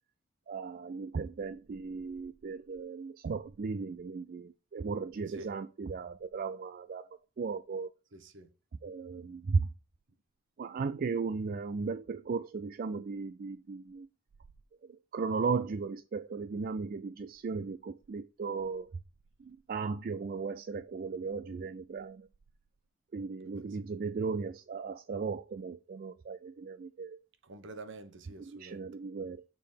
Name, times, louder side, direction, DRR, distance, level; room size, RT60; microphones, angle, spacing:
voice 1, 0.5-7.1 7.4-7.9 8.8-9.7 10.6-14.1 15.1-18.9 19.4-22.3 23.1-27.2 28.4-29.4, right 4 dB, 40° right, 0.3 m, -36 dB
voice 2, 8.1-8.5 23.4-23.8 27.4-28.9, right 2 dB, 60° right, 1.0 m, -48 dB
6.7 x 3.7 x 5.0 m
head